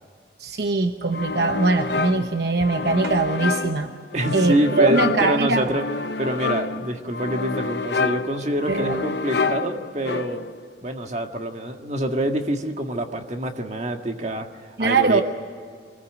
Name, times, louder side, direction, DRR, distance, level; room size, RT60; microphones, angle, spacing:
voice 1, 0.4-3.9 4.3-5.7 8.7-9.0 14.8-15.2, right 3 dB, 65° right, 6 dB, 0.9 m, -21 dB
sound 1, 1.1-10.6, left 4 dB, 70° left, 0.7 m, -28 dB
voice 2, 4.1-5.8 6.2-10.4 10.8-15.2, right 1 dB, 40° right, 4 dB, 1.8 m, -26 dB
24.5 x 20.0 x 9.1 m, 2.1 s
head